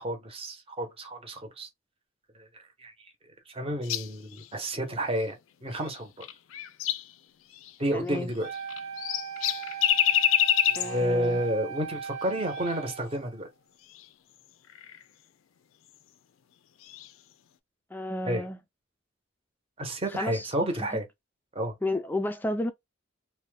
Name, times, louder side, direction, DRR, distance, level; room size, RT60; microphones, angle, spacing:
voice 1, 0.0-1.7 2.4-2.5 2.8-2.9 3.5-5.3 5.6-6.1 7.8-8.5 10.7-13.5 18.2-18.4 19.8-21.1 21.5-21.7, right 1 dB, 30° right, 0.9 m, -30 dB
sound 1, 3.8-4.5 5.8-7.1 7.5-7.8 8.4-11.1 12.5-12.8 13.9-14.1 14.7-15.0 16.8-17.1, left 11 dB, 85° left, 0.4 m, -27 dB
voice 2, 7.9-8.3 10.8-11.4 17.9-18.6 20.1-20.5 21.8-22.7, left 2 dB, 10° left, 0.3 m, -31 dB
Wind instrument woodwind instrument, 8.4-13.5, right 7 dB, 85° right, 1.1 m, -38 dB
2.7 x 2.1 x 3.2 m
head